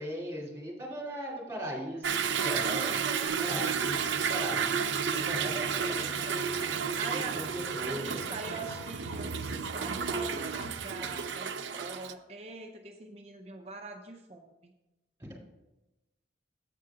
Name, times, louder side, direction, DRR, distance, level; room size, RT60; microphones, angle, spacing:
voice 1, 0.0-3.0 3.4-6.2 7.1-8.3 15.2-15.3, equal, 15° right, -4 dB, 2.6 m, -39 dB
Toilet flush / Drip / Trickle dribble, 2.0-12.1, right 6 dB, 85° right, 0.5 m, -32 dB
voice 2, 2.7-3.4 5.3-7.5 7.8-14.7, right 3 dB, 35° right, 3 dB, 0.5 m, -43 dB
sound 1, 3.3-8.8, equal, 35° left, 1.6 m, -52 dB
8.3 x 4.9 x 5.7 m, 1.0 s
head